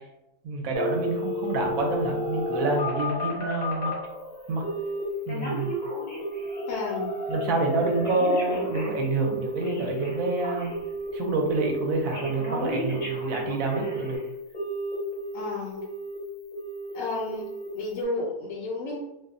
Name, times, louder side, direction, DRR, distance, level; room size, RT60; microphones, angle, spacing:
voice 1, 0.4-3.9 4.5-4.6 5.3-5.8 7.3-10.7 11.1-14.2, right 3 dB, 70° right, 1 dB, 0.9 m, -27 dB
Telephone, 0.7-4.0 4.6-5.0 5.3-6.6 6.9-7.3 7.7-11.1 11.4-11.8 12.1-14.2 14.5-15.4 15.8-16.2 16.5-16.9 17.3-17.7 18.0-18.1, equal, 40° left, 0.7 m, -32 dB
sound 1, 1.8-11.4, left 2 dB, 85° left, 1.1 m, -39 dB
voice 2, 6.7-7.1 15.3-15.9 16.9-17.5 17.7-19.0, left 2 dB, 70° left, -3 dB, 0.9 m, -32 dB
2.5 x 2.1 x 2.4 m, 0.91 s
omnidirectional pair, 1.6 m